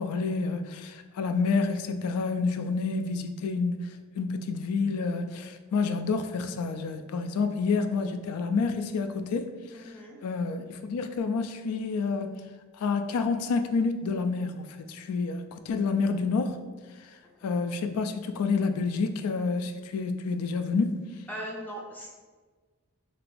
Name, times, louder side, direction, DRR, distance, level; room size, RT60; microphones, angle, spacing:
voice 1, 0.0-3.9 4.2-9.5 9.8-9.9 10.2-12.4 12.8-16.6 17.4-21.0, left 4 dB, 85° left, 8 dB, 0.3 m, -28 dB
voice 2, 9.7-10.2 21.3-22.1, equal, 10° left, -4 dB, 0.3 m, -39 dB
3.2 x 2.9 x 2.5 m, 1.4 s
head